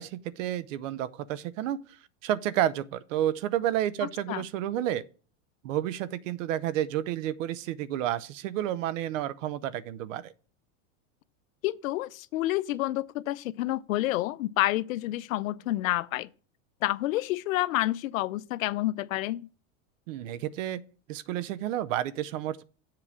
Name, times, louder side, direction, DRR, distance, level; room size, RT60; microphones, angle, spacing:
voice 1, 0.0-5.0 5.6-10.3 20.1-20.8 21.1-22.6, right 12 dB, 70° right, 0.7 m, -31 dB
voice 2, 11.6-16.3 16.8-19.5, left 16 dB, 90° left, 0.6 m, -29 dB
7.6 x 4.8 x 7.2 m
supercardioid pair, 140°, 39 cm